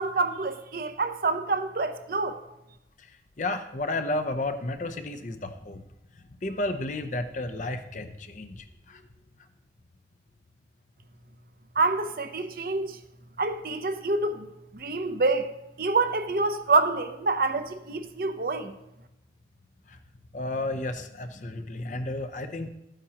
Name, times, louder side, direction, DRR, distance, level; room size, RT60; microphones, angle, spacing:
voice 1, 0.0-2.4 11.8-13.0 13.4-14.5 14.7-18.7, right 3 dB, 55° right, 0.7 m, -27 dB
voice 2, 3.0-5.8 6.1-9.0 19.9-20.0 20.3-22.7, left 2 dB, 45° left, 0.7 m, -32 dB
13.5 x 8.9 x 2.9 m
head